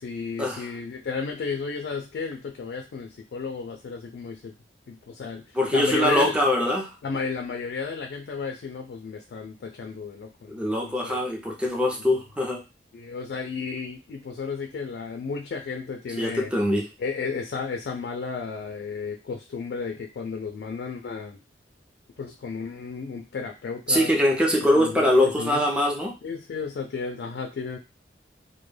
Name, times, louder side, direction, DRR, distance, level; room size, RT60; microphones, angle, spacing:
voice 1, 0.0-4.5 4.9-6.3 7.0-11.2 12.9-16.5 17.0-21.4 22.2-24.1 24.7-25.6 26.2-27.8, left 5 dB, 65° left, 3 dB, 0.3 m, -33 dB
voice 2, 5.5-6.9 10.5-12.6 16.2-16.9 23.9-26.1, left 1 dB, 5° right, 0 dB, 0.5 m, -23 dB
2.1 x 2.1 x 3.1 m, 0.29 s
head